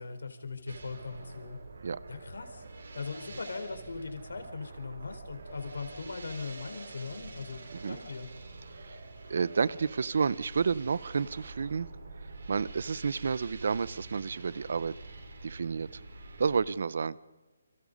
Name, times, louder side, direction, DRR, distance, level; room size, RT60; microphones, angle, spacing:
voice 1, 0.0-1.6 2.1-8.3, left 4 dB, 90° left, 7 dB, 4.3 m, -40 dB
sound 1, 0.7-16.6, right 3 dB, 70° right, 5.3 m, -46 dB
voice 2, 9.3-11.9 12.2-14.9 15.4-16.0 16.4-17.2, right 5 dB, 50° right, 20 dB, 0.7 m, -30 dB
29.0 x 25.0 x 5.4 m, 1.2 s
hypercardioid pair, 175°, 0 cm